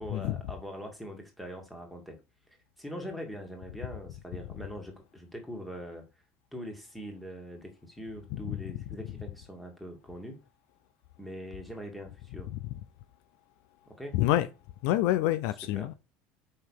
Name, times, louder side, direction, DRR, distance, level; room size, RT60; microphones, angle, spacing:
voice 1, 0.0-2.2 2.8-6.0 6.5-10.4 11.2-12.5 13.9-14.2 15.8-15.9, equal, ahead, 2.0 m, -42 dB
voice 2, 8.3-8.8 12.5-12.6 14.1-14.5 14.8-15.9, left 14 dB, 65° left, 0.7 m, -27 dB
5.8 x 5.6 x 6.4 m
cardioid pair, 175°, 4 cm